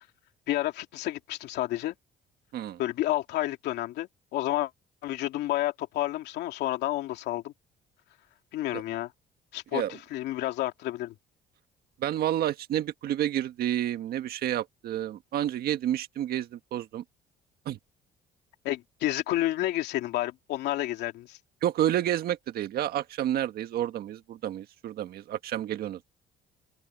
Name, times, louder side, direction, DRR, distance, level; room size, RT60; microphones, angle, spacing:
voice 1, 0.5-1.9 2.8-4.7 5.0-7.5 8.5-9.1 9.5-11.1 18.6-21.4, left 15 dB, 80° left, 2.7 m, -30 dB
voice 2, 12.0-17.0 17.7-17.8 21.6-26.1, right 11 dB, 65° right, 1.6 m, -30 dB
open air
cardioid pair, 110°, 17 cm